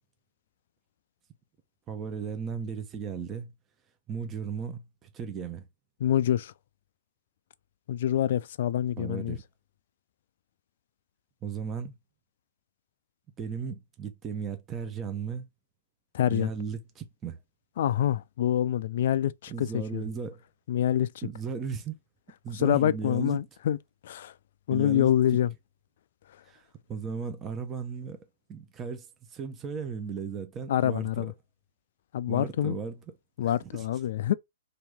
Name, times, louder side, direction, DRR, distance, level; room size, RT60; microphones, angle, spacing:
voice 1, 1.9-3.5 4.1-5.7 9.0-9.4 11.4-11.9 13.4-15.5 16.3-17.4 19.5-20.4 21.2-22.0 22.4-23.4 24.7-25.1 26.5-28.2 28.5-31.3 32.3-32.9 33.4-33.9, right 6 dB, 20° right, 0.7 m, -36 dB
voice 2, 6.0-6.5 7.9-9.4 16.1-16.5 17.8-20.0 20.7-21.1 22.5-23.8 24.0-24.3 24.7-25.5 30.7-31.3 32.1-32.8 33.4-34.3, left 11 dB, 55° left, 0.3 m, -26 dB
3.0 x 2.6 x 3.5 m
figure-of-eight pair, 120°, 0 cm